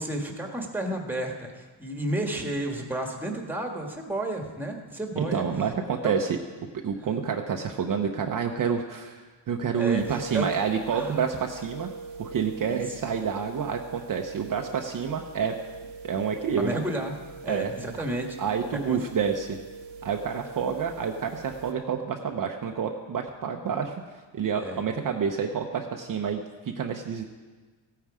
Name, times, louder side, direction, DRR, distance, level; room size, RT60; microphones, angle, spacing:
voice 1, 0.0-5.4 6.0-6.1 7.0-7.1 9.8-10.4 10.9-11.3 12.7-12.8 16.6-17.1 17.4-18.3 18.7-19.0 24.6-24.8, right 1 dB, 5° right, 2 dB, 1.5 m, -32 dB
voice 2, 5.2-6.4 6.8-11.9 12.2-15.5 16.0-16.8 17.5-17.7 18.4-19.6 20.0-24.0 24.3-26.4 26.7-27.2, right 6 dB, 45° right, 3 dB, 0.8 m, -28 dB
sound 1, 10.0-21.7, right 4 dB, 85° right, 1.4 m, -43 dB
16.0 x 9.2 x 4.9 m, 1.4 s
cardioid pair, 140°, 47 cm